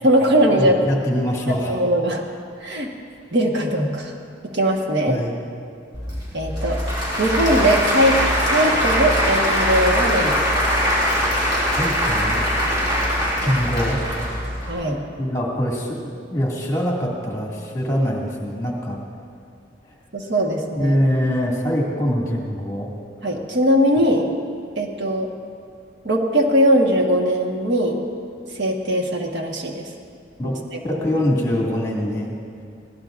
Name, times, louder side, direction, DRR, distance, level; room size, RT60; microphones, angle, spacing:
voice 1, 0.0-0.8 1.5-2.2 2.6-2.9 3.3-4.1 4.5-5.2 6.3-6.8 7.2-8.2 8.5-10.4 13.4-13.5 14.7-15.0 20.1-21.0 23.2-24.3 24.8-25.3 26.0-28.0 28.6-29.8 30.4-30.6 30.9-31.0, equal, 65° right, 1 dB, 1.4 m, -20 dB
voice 2, 0.6-1.7 5.1-5.3 11.8-12.4 13.4-14.0 15.2-19.0 20.7-22.9 30.4-30.5 30.8-32.4, equal, 15° left, -3 dB, 2.2 m, -23 dB
Applause / Crowd, 5.9-14.7, equal, 20° right, 4.1 m, -21 dB
21.5 x 17.5 x 2.6 m, 2.4 s
head